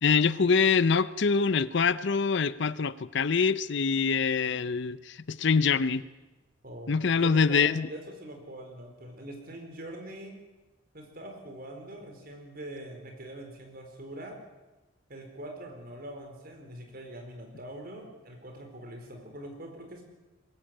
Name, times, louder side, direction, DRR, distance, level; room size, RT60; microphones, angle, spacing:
voice 1, 0.0-6.0 6.9-7.9, left 5 dB, 60° left, 16 dB, 0.6 m, -25 dB
voice 2, 6.6-10.4 10.9-14.4 15.1-20.0, right 1 dB, 45° right, 3 dB, 4.3 m, -43 dB
22.0 x 14.5 x 8.9 m, 1.1 s
head